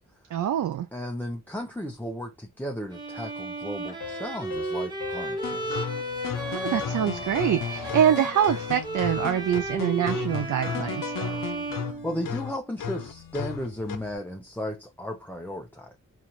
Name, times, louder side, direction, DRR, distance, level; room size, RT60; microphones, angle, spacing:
voice 1, 0.3-0.9 6.5-11.4, right 10 dB, 70° right, 0.4 m, -25 dB
voice 2, 0.9-5.8 11.8-16.0, left 1 dB, 5° left, 0.6 m, -35 dB
Bowed string instrument, 2.9-12.6, right 1 dB, 15° right, 1.1 m, -34 dB
Piano, 4.0-7.3, left 8 dB, 60° left, 1.2 m, -43 dB
sound 1, 5.4-14.1, left 7 dB, 85° left, 0.6 m, -34 dB
4.1 x 2.4 x 3.0 m
wide cardioid pair, 115°, 32 cm